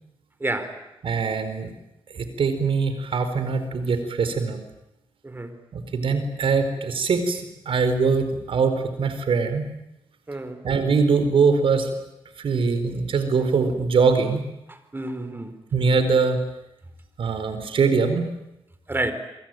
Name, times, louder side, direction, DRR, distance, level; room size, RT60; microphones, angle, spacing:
voice 1, 0.4-0.8 5.2-5.5 10.3-10.6 14.7-15.5 18.9-19.1, right 2 dB, 25° right, 10 dB, 4.2 m, -29 dB
voice 2, 1.0-1.7 2.1-4.6 5.7-9.7 10.6-11.9 12.4-14.5 15.7-16.4 17.2-18.3, right 5 dB, 70° right, 9 dB, 4.4 m, -22 dB
27.5 x 23.0 x 9.2 m, 0.90 s
cardioid pair, 75°, 9 cm